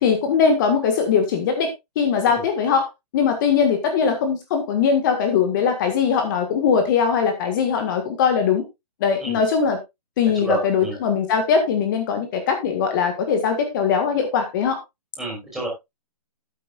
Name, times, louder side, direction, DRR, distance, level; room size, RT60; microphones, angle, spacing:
voice 1, 0.0-1.7 2.0-2.9 3.1-8.6 9.0-9.8 10.2-14.8, left 6 dB, 30° left, 6 dB, 1.8 m, -20 dB
voice 2, 10.3-10.9 15.2-15.7, right 2 dB, ahead, -4 dB, 5.2 m, -29 dB
13.0 x 9.3 x 2.5 m, 0.21 s
hypercardioid pair, 160°, 21 cm